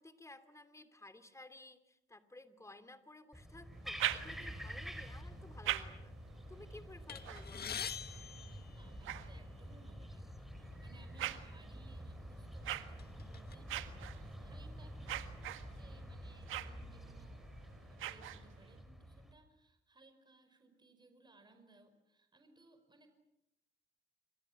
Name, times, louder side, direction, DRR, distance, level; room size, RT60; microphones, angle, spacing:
voice 1, 0.0-6.2 6.5-7.9, left 2 dB, 15° left, 10 dB, 2.9 m, -56 dB
sound 1, 3.3-19.3, equal, ahead, 4.9 m, -49 dB
sound 2, 3.7-4.7 5.3-9.9 10.5-18.8, right 13 dB, 85° right, 1.7 m, -45 dB
sound 3, 7.1-9.4 10.3-10.4 10.7-10.9 11.7-11.9 12.4-13.5, left 8 dB, 50° left, 1.7 m, -45 dB
voice 2, 8.8-23.1, right 2 dB, 20° right, 7 dB, 5.2 m, -64 dB
28.5 x 25.5 x 7.4 m, 0.85 s
cardioid pair, 90°, 20 cm